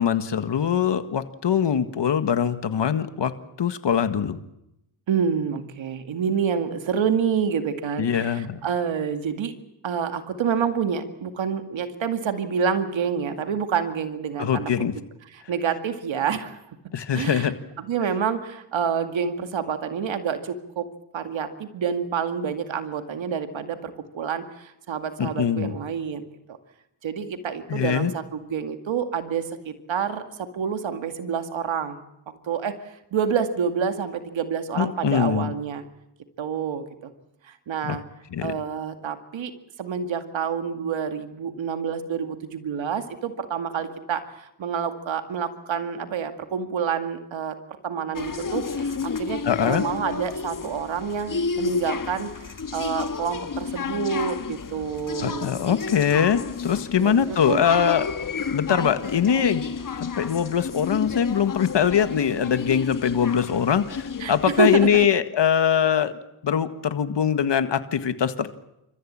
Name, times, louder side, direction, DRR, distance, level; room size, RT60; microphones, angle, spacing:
voice 1, 0.0-3.3 3.6-4.4 8.0-8.6 14.4-14.9 16.9-17.5 25.2-25.8 27.7-28.1 34.8-35.5 37.8-38.0 38.3-38.5 49.5-49.8 55.2-58.1 58.5-59.6 60.0-66.1 66.4-68.5, left 8 dB, 70° left, 10 dB, 1.8 m, -22 dB
voice 2, 5.1-9.5 9.8-14.7 15.3-16.6 17.1-20.9 21.1-26.2 27.0-32.0 32.5-32.7 33.1-35.8 36.4-36.8 37.4-38.0 38.4-39.5 39.8-47.5 47.8-55.5 57.0-57.6 58.7-58.9 64.2-64.9, right 7 dB, 85° right, 8 dB, 2.2 m, -28 dB
sound 1, 48.1-65.1, left 5 dB, 45° left, 1.5 m, -32 dB
29.5 x 14.5 x 8.7 m, 0.86 s
cardioid pair, 75°, 45 cm